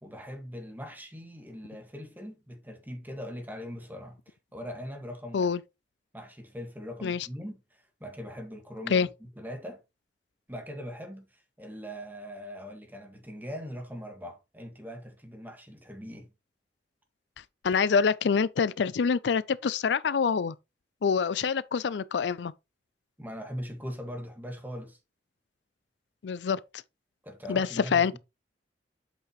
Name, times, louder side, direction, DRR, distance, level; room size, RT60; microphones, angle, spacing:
voice 1, 0.0-5.6 6.1-9.8 10.5-16.3 23.2-25.0 27.2-28.2, equal, 10° right, 1.8 m, -41 dB
voice 2, 17.6-20.6 21.0-22.5 26.2-26.6 27.5-28.2, left 6 dB, 80° left, 0.4 m, -26 dB
8.2 x 5.8 x 3.1 m
head